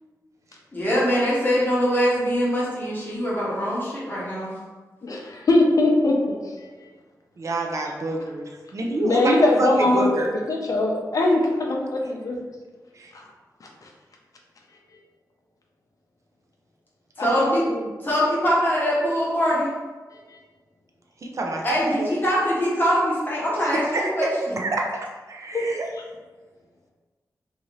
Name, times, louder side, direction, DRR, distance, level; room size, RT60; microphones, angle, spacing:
voice 1, 0.7-4.5 17.2-17.7 18.0-19.7 21.6-24.6, equal, 30° left, -7 dB, 0.8 m, -23 dB
voice 2, 5.0-6.9 9.0-10.1 10.5-12.4 13.1-13.2 13.8-13.9 17.2-17.8 20.3-20.4 25.5-25.7, left 2 dB, 55° left, -1 dB, 0.5 m, -22 dB
voice 3, 7.4-9.3 9.6-10.3 12.0-12.1 12.9-13.1 21.2-21.7 22.0-22.1 23.7-24.3 24.6-24.9 25.3-25.9, right 2 dB, 50° right, 0 dB, 0.4 m, -27 dB
2.7 x 2.4 x 3.0 m, 1.3 s
wide cardioid pair, 120°, 7 cm